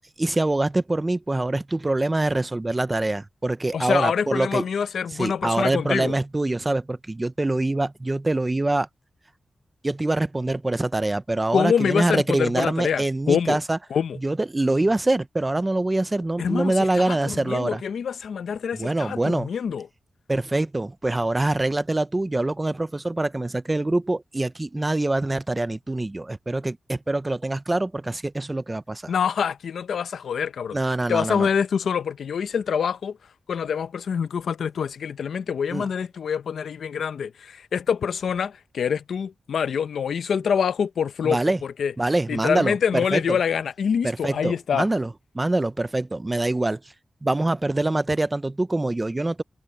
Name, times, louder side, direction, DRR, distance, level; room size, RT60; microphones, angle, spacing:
voice 1, 0.2-4.6 5.1-8.9 9.8-13.8 14.2-17.8 18.7-19.5 20.3-29.1 30.7-31.5 35.7-35.9 41.2-41.6 42.0-43.4 44.0-46.8 47.2-49.4, right 2 dB, 15° right, 0.5 m, -24 dB
voice 2, 3.7-6.1 11.5-13.6 13.9-14.2 16.4-19.9 29.1-30.8 31.1-33.2 33.5-41.9 42.3-44.9, left 7 dB, 90° left, 0.8 m, -25 dB
wide cardioid pair, 165°, 0 cm